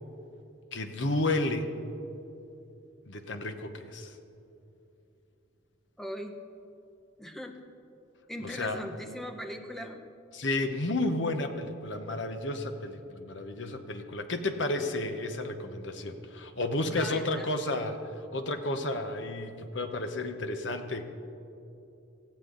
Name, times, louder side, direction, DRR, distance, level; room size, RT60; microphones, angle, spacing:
voice 1, 0.7-1.7 3.1-4.1 8.5-8.8 10.3-21.1, left 2 dB, 70° left, 7 dB, 1.1 m, -32 dB
voice 2, 6.0-6.4 7.2-7.6 8.3-10.0 16.9-17.5, equal, ahead, 4 dB, 0.9 m, -39 dB
18.0 x 15.0 x 4.0 m, 2.9 s
head